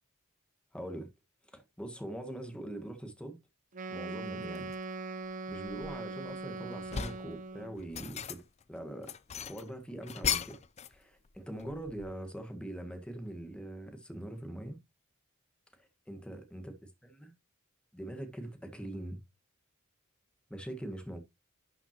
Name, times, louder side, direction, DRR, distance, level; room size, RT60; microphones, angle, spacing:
voice 1, 0.7-1.1 1.5-3.4 3.9-4.7 5.5-10.6 10.9-14.8 15.8-16.8 17.0-17.3 17.9-19.2 20.5-21.2, right 1 dB, 5° left, 1.5 m, -43 dB
Wind instrument woodwind instrument, 3.7-7.8, right 3 dB, 35° right, 0.7 m, -41 dB
sound 1, 4.6-4.8 5.3-6.3 6.7-7.3 7.8-8.6 9.0-11.0 11.2-12.3, left 8 dB, 30° left, 0.4 m, -37 dB
11.5 x 5.8 x 2.9 m
head